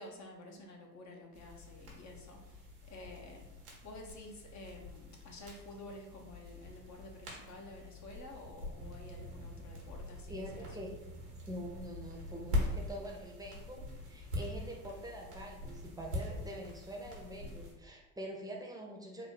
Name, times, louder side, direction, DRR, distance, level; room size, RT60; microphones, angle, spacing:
voice 1, 0.0-3.5 3.8-10.8, left 1 dB, 40° left, 1 dB, 1.0 m, -51 dB
sound 1, 1.3-17.7, left 2 dB, 90° right, 1.2 m, -43 dB
voice 2, 10.3-10.9 11.5-19.3, equal, 10° right, 0 dB, 0.8 m, -45 dB
3.8 x 2.3 x 3.4 m, 1.0 s
hypercardioid pair, 65°, 46 cm